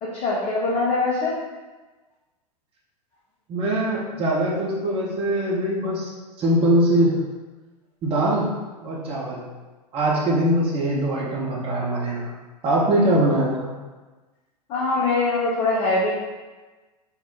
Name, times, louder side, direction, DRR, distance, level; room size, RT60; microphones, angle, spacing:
voice 1, 0.0-1.4 14.7-16.1, left 3 dB, 30° left, -6 dB, 0.7 m, -22 dB
voice 2, 3.5-6.1 6.4-7.2 8.0-8.5 8.8-9.5 9.9-12.3 12.6-13.7, right 1 dB, 25° right, -4 dB, 0.8 m, -22 dB
4.2 x 2.0 x 3.7 m, 1.2 s
figure-of-eight pair, 95°, 21 cm